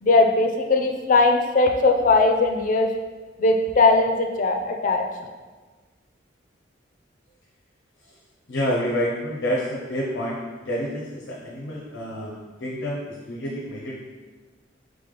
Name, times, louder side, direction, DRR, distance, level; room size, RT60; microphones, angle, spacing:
voice 1, 0.0-2.9 3.4-5.0, left 3 dB, 45° left, 3 dB, 0.4 m, -19 dB
voice 2, 8.5-10.4 10.6-12.3 12.6-14.0, equal, 90° left, -5 dB, 0.7 m, -28 dB
3.6 x 3.4 x 3.7 m, 1.4 s
head